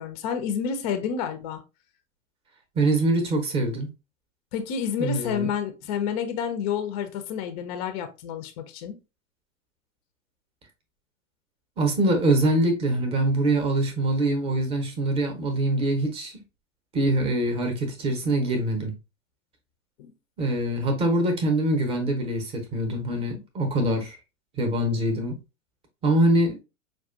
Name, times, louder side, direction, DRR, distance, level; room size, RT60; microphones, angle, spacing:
voice 1, 0.0-1.6 4.5-9.0 20.0-20.1, left 7 dB, 30° left, 0.4 m, -29 dB
voice 2, 2.8-3.9 5.0-5.5 11.8-16.4 16.9-18.9 20.4-24.2 24.6-25.4 26.0-26.6, right 1 dB, 15° right, 0.7 m, -24 dB
4.7 x 2.3 x 2.4 m
figure-of-eight pair, 100°, 40 cm